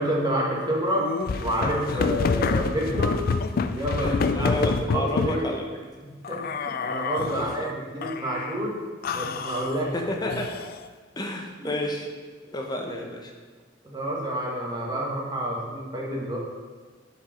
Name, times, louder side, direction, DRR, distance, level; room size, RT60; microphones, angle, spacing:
voice 1, 0.0-3.2 3.7-5.5 6.0-8.8 9.1-9.9 11.6-11.7 13.8-16.4, right 1 dB, 20° right, -3 dB, 1.5 m, -29 dB
sound 1, 1.0-5.4 6.2-7.5 8.0-8.6 9.0-10.9, left 4 dB, 50° left, 0.3 m, -28 dB
voice 2, 4.0-5.8 7.3-7.7 9.9-10.5 11.2-12.1 12.5-13.3, left 1 dB, 20° left, 2 dB, 0.9 m, -31 dB
8.8 x 4.7 x 5.1 m, 1.4 s
head